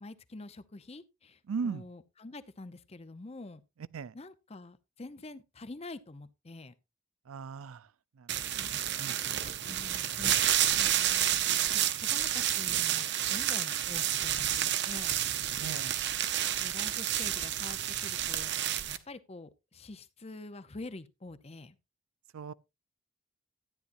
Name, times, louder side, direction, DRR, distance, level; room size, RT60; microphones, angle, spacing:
voice 1, 0.0-3.6 4.1-6.7 9.6-11.3 11.7-15.2 16.6-18.5 18.9-21.8, left 2 dB, 30° left, 0.6 m, -46 dB
voice 2, 1.5-1.8 3.9-4.1 7.3-7.9 8.2-8.4 9.0-9.1 10.3-10.5 15.6-16.0 22.3-22.5, right 5 dB, 85° right, 0.4 m, -38 dB
sound 1, 8.3-19.0, right 11 dB, 55° right, 0.7 m, -30 dB
13.0 x 9.7 x 2.6 m
head